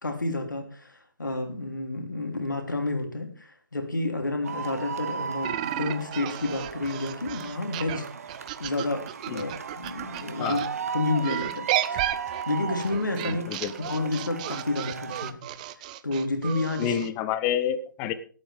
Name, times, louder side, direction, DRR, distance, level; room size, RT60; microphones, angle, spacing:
voice 1, 0.0-8.1 8.6-10.6 10.9-13.4 13.9-15.4 16.0-17.0, left 2 dB, 70° left, 4 dB, 3.2 m, -30 dB
sound 1, 4.4-15.3, right 6 dB, 45° right, 1.1 m, -36 dB
sound 2, 5.4-10.7 11.2-17.1, right 14 dB, 20° right, 0.5 m, -33 dB
voice 2, 13.3-13.7 16.8-18.1, left 9 dB, 15° left, 13 dB, 0.8 m, -28 dB
19.5 x 8.9 x 3.6 m, 0.43 s
figure-of-eight pair, 135°, 11 cm